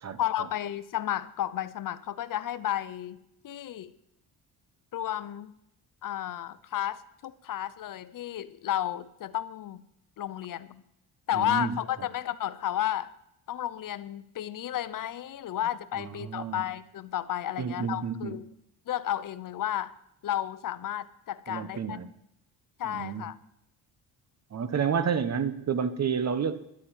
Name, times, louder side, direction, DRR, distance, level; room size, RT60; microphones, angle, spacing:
voice 1, 0.2-3.9 4.9-5.5 6.0-9.8 10.2-10.8 11.3-13.1 13.5-18.5 18.9-19.9 20.2-22.0 22.8-23.4, left 12 dB, 55° left, 15 dB, 0.8 m, -32 dB
voice 2, 11.4-11.7 16.0-16.6 17.6-18.4 21.5-22.1 22.8-23.3 24.5-26.6, right 6 dB, 40° right, 13 dB, 1.2 m, -30 dB
11.5 x 8.8 x 8.8 m, 0.78 s
cardioid pair, 105°, 40 cm